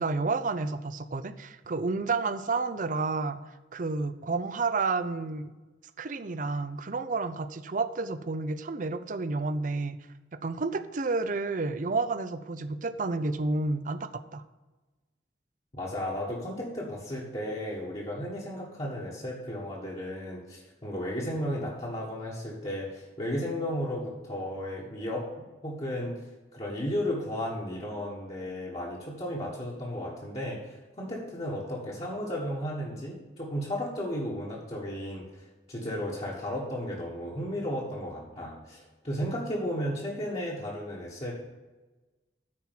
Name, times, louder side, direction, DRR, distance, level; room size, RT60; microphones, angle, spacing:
voice 1, 0.0-3.4 3.7-5.5 6.0-10.0 10.4-14.4, right 3 dB, 45° right, 12 dB, 0.5 m, -30 dB
voice 2, 15.7-26.2 26.5-35.4 35.7-41.3, equal, 35° left, -5 dB, 1.5 m, -34 dB
9.6 x 4.4 x 7.5 m, 1.2 s
head